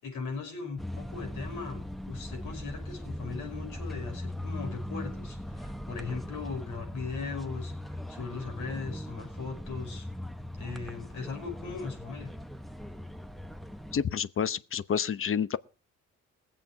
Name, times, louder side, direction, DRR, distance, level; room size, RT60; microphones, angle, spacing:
voice 1, 0.0-10.1 10.5-12.3, left 4 dB, 85° left, 5.7 m, -39 dB
sound 1, 0.8-14.0, left 1 dB, ahead, 0.7 m, -39 dB
voice 2, 13.9-15.6, left 7 dB, 45° left, 0.8 m, -29 dB
20.0 x 7.7 x 4.9 m
cardioid pair, 90°, 30 cm